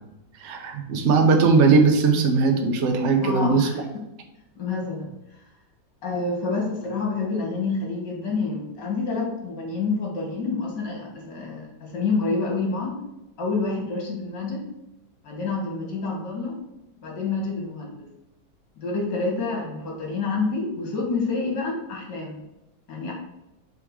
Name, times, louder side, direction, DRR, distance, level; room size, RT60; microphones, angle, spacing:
voice 1, 0.4-3.8, right 4 dB, 50° right, 4 dB, 0.9 m, -19 dB
voice 2, 3.2-4.0 4.6-5.1 6.0-13.0 13.4-14.7 15.2-16.6 17.0-18.1 18.8-22.4 22.9-23.1, left 3 dB, 65° left, -1 dB, 2.3 m, -28 dB
6.6 x 3.7 x 4.8 m, 0.91 s
omnidirectional pair, 2.1 m